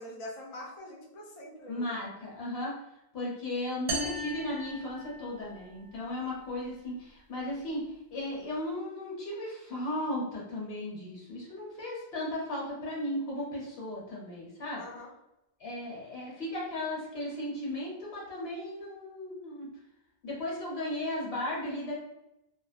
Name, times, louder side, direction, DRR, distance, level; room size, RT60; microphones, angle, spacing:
voice 1, 0.0-1.9 14.8-15.1, left 1 dB, 40° left, -4 dB, 0.6 m, -44 dB
voice 2, 1.7-2.7 3.1-7.8 8.1-14.8 15.6-19.7 20.2-21.9, left 1 dB, 70° left, -5 dB, 1.1 m, -36 dB
sound 1, 3.9-5.6, equal, 70° right, 0.7 m, -36 dB
2.4 x 2.1 x 2.4 m, 0.87 s
omnidirectional pair, 1.1 m